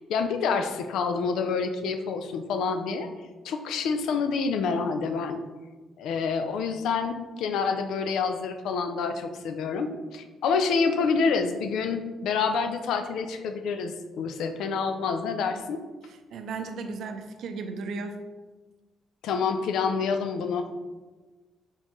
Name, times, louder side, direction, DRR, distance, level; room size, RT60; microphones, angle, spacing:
voice 1, 0.0-3.1 3.4-5.4 6.0-15.8 19.2-20.7, left 5 dB, 80° left, 7 dB, 0.4 m, -27 dB
voice 2, 16.3-18.1, right 4 dB, 75° right, 6 dB, 0.5 m, -35 dB
4.4 x 3.8 x 3.0 m, 1.3 s
cardioid pair, 90°, 0 cm